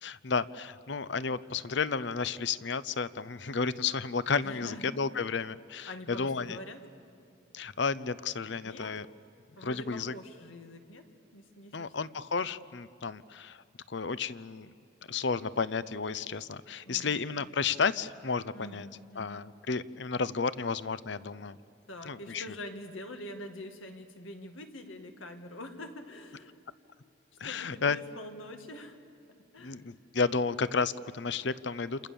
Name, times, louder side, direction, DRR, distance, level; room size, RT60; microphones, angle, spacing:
voice 1, 0.0-6.6 7.5-9.1 9.6-10.1 11.7-13.6 13.9-14.7 15.1-18.9 19.2-21.6 22.1-22.4 27.4-28.0 29.6-32.0, left 5 dB, 65° left, 16 dB, 0.7 m, -32 dB
voice 2, 4.4-5.3 5.8-6.8 8.6-9.0 9.6-11.9 16.9-17.2 18.5-19.5 21.9-26.5 27.4-29.0 29.5-29.8, left 1 dB, 85° left, 5 dB, 2.1 m, -45 dB
28.0 x 28.0 x 7.0 m, 2.5 s
head